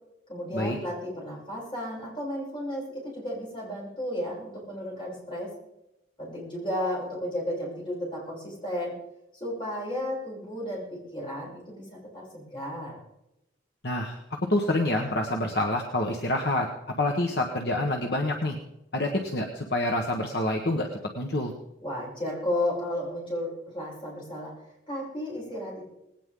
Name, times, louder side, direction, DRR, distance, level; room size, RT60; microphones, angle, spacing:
voice 1, 0.3-5.5 6.2-8.9 9.4-13.0 21.8-24.5 24.9-25.9, left 1 dB, 25° left, -5 dB, 7.7 m, -33 dB
voice 2, 13.8-14.2 14.5-16.7 17.0-18.6 18.9-20.9 21.1-21.5, left 1 dB, 60° left, 1 dB, 1.4 m, -27 dB
19.5 x 18.0 x 3.9 m, 0.87 s
head